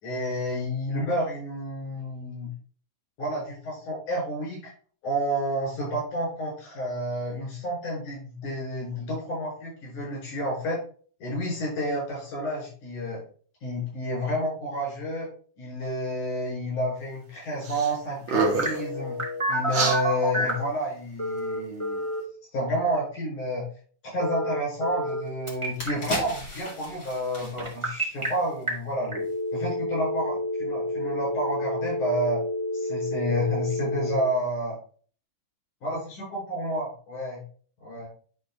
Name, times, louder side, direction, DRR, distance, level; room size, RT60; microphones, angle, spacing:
voice 1, 0.0-2.5 3.2-4.6 5.0-10.8 11.2-13.2 13.6-15.3 15.6-19.2 19.5-22.0 22.5-23.6 24.1-29.2 29.5-32.4 32.7-34.8 35.8-36.0 36.3-37.4 37.8-38.1, equal, 85° left, -3 dB, 5.8 m, -30 dB
sound 1, 17.6-17.9 18.2-18.8 19.7-20.0, right 3 dB, 50° right, 1.9 m, -26 dB
Telephone, 18.6-20.7 21.2-22.2 24.2-25.2 25.5-25.9 27.6-28.3 28.7-28.8 29.1-34.2, equal, 15° right, 1.4 m, -29 dB
sound 2, 25.1-25.2 25.6-28.8 29.1-29.3, left 1 dB, 30° left, 2.6 m, -38 dB
11.0 x 3.7 x 3.6 m, 0.43 s
omnidirectional pair, 3.4 m